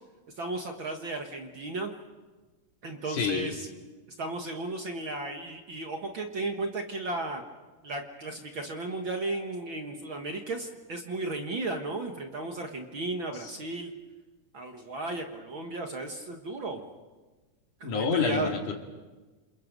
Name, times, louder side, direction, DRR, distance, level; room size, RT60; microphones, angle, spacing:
voice 1, 0.4-1.9 2.8-3.7 4.2-7.4 7.8-13.9 14.5-16.8 17.8-18.5, right 2 dB, 45° right, 3 dB, 1.8 m, -34 dB
voice 2, 3.1-3.5 13.4-13.5 17.8-18.8, left 5 dB, 70° left, 3 dB, 3.8 m, -28 dB
28.5 x 28.0 x 5.3 m, 1.3 s
omnidirectional pair, 3.6 m